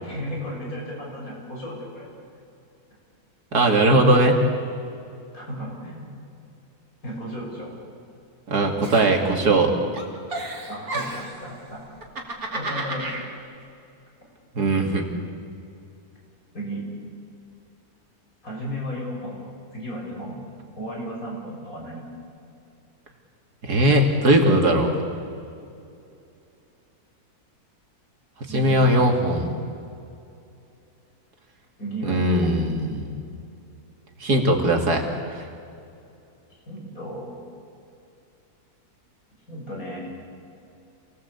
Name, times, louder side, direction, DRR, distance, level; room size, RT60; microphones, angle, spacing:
voice 1, 0.0-2.1 5.3-6.1 7.0-7.7 10.7-11.8 12.5-13.2 16.5-17.0 18.4-19.4 19.7-20.4 20.8-22.0 28.5-29.1 31.8-32.5 36.7-37.4 39.5-40.1, equal, 60° left, -2 dB, 7.2 m, -34 dB
voice 2, 3.5-4.4 8.5-9.7 14.6-15.0 23.6-24.9 28.5-29.5 32.0-33.2 34.2-35.0 35.3-35.4, right 1 dB, 85° right, 3 dB, 3.1 m, -19 dB
Giggle, 8.8-9.7 9.9-11.4 12.0-13.2, right 2 dB, 70° right, 3.4 m, -32 dB
27.5 x 19.5 x 8.5 m, 2.6 s
omnidirectional pair, 1.6 m